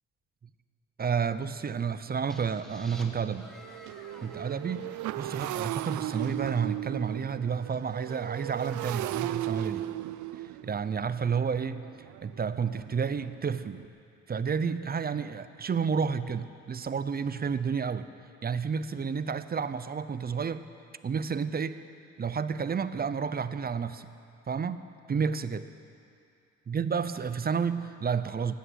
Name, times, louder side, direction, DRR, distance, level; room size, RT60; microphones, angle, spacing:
voice 1, 1.0-3.5 4.2-4.9 5.2-9.9 10.6-11.9 12.2-13.8 14.3-18.1 18.4-20.7 21.0-21.8 22.2-24.1 24.5-25.7 26.7-28.5, right 6 dB, 30° right, 13 dB, 0.6 m, -30 dB
Motorcycle, 1.8-2.0 2.3-13.9, right 15 dB, 75° right, 0.5 m, -37 dB
sound 1, 2.3-6.0, equal, ahead, 1.6 m, -52 dB
15.5 x 11.5 x 8.0 m, 2.5 s
cardioid pair, 90°, 30 cm